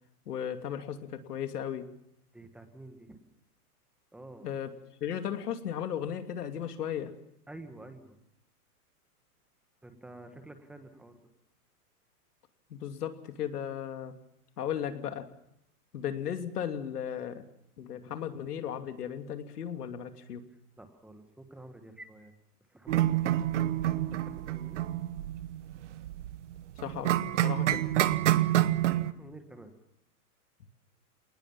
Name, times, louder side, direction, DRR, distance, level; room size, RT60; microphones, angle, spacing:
voice 1, 0.3-1.9 4.4-4.7 5.0-7.1 12.7-14.1 14.6-15.3 15.9-17.4 17.8-20.4 26.8-27.8, left 9 dB, 75° left, 8 dB, 2.9 m, -36 dB
voice 2, 2.3-3.2 4.1-4.5 7.5-8.2 9.8-11.2 20.8-22.3 22.7-24.8 28.8-29.7, right 2 dB, ahead, 8 dB, 1.4 m, -50 dB
sound 1, 22.9-29.1, right 13 dB, 50° right, 1.1 m, -28 dB
26.5 x 19.5 x 7.3 m, 0.75 s
supercardioid pair, 170°, 46 cm